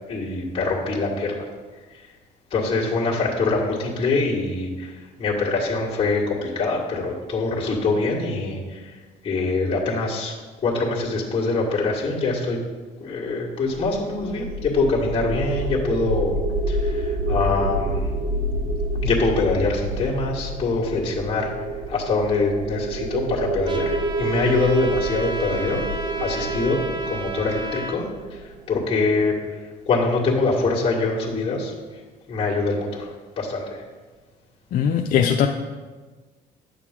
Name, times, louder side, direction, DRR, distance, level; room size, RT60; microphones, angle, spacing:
voice 1, 0.1-1.5 1.9-2.1 2.5-9.0 9.2-10.3 10.6-12.6 13.0-16.4 16.7-18.1 18.9-21.5 21.9-25.8 26.2-28.4 28.7-29.6 29.9-31.7 32.3-33.1 33.4-33.8, left 3 dB, 30° left, -7 dB, 1.8 m, -24 dB
sound 1, 13.9-28.8, right 1 dB, 60° right, 1.2 m, -28 dB
Trumpet, 23.7-28.0, right 1 dB, 30° right, 0.9 m, -33 dB
voice 2, 34.7-35.5, left 8 dB, 55° left, 3 dB, 0.5 m, -19 dB
9.4 x 6.5 x 3.7 m, 1.4 s
cardioid pair, 110°, 17 cm